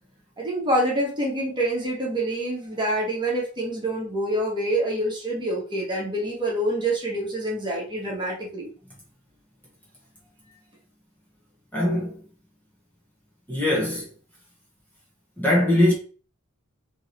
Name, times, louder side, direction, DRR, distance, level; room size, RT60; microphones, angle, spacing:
voice 1, 0.4-8.7, right 1 dB, 20° right, 1.4 m, -26 dB
voice 2, 11.7-12.2 13.5-14.1 15.4-15.9, left 1 dB, 10° left, 1.2 m, -21 dB
3.7 x 3.1 x 4.0 m
head